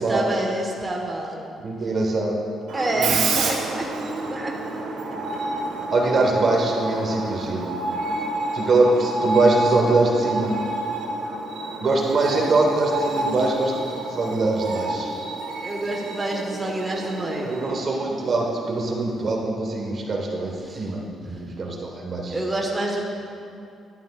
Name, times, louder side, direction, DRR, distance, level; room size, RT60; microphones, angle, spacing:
voice 1, 0.0-1.5 2.7-3.9 4.3-4.8 5.3-5.4 15.5-17.5 20.6-20.9 21.2-21.4 22.3-23.0, right 1 dB, 20° right, -1 dB, 1.2 m, -28 dB
voice 2, 1.6-2.4 3.0-3.1 5.9-7.6 8.5-10.5 11.8-15.1 17.4-22.4, right 2 dB, 50° right, -1 dB, 1.2 m, -23 dB
Screech, 2.7-19.3, right 2 dB, 80° right, 1.1 m, -29 dB
11.5 x 9.0 x 2.3 m, 2.5 s
cardioid pair, 90°, 0 cm